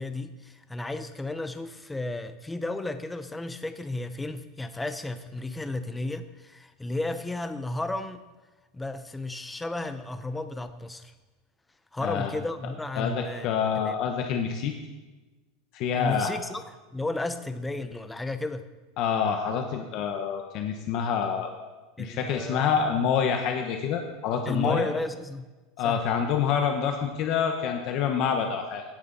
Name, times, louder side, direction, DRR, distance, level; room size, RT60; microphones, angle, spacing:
voice 1, 0.0-8.2 8.7-11.1 11.9-13.9 16.0-16.6 16.9-18.7 22.0-22.8 24.5-25.5 25.8-26.0, left 2 dB, 5° left, 9 dB, 0.6 m, -33 dB
voice 2, 13.0-14.7 15.7-16.3 19.0-21.5 22.0-24.9 25.8-28.8, left 7 dB, 40° left, 4 dB, 1.1 m, -27 dB
16.5 x 9.6 x 4.1 m, 1.2 s
supercardioid pair, 170°, 0 cm